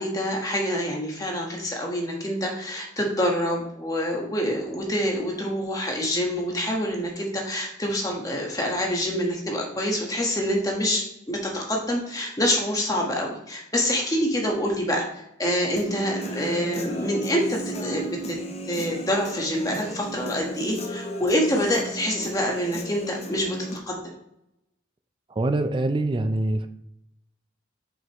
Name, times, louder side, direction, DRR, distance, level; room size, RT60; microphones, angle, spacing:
voice 1, 0.0-15.0 15.4-18.4 18.7-24.0, equal, 20° left, -1 dB, 1.3 m, -26 dB
Human voice / Guitar, 15.8-23.8, right 1 dB, 35° left, 0.6 m, -35 dB
voice 2, 25.4-26.7, right 2 dB, 25° right, 8 dB, 0.4 m, -24 dB
6.2 x 5.2 x 3.0 m, 0.81 s
head